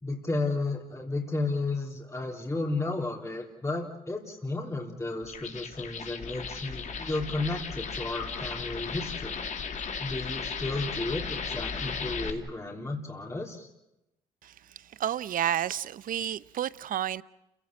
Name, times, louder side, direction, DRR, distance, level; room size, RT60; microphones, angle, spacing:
voice 1, 0.0-9.4 10.0-13.7, left 2 dB, 20° left, 3.8 m, -33 dB
sound 1, 5.2-12.3, left 5 dB, 55° left, 2.8 m, -36 dB
voice 2, 14.4-17.2, right 10 dB, 65° right, 0.9 m, -31 dB
28.5 x 17.0 x 9.0 m
supercardioid pair, 70°, 15 cm